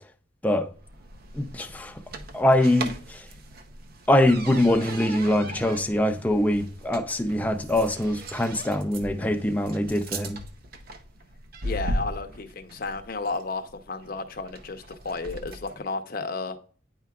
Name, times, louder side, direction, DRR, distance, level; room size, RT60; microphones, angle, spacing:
sound 1, 0.7-15.8, right 1 dB, 55° right, 0.7 m, -38 dB
voice 1, 1.3-1.9 2.3-3.2 4.1-10.4, left 1 dB, 10° left, 0.5 m, -23 dB
voice 2, 11.6-16.6, left 3 dB, 50° left, 0.7 m, -33 dB
9.4 x 4.7 x 2.3 m
head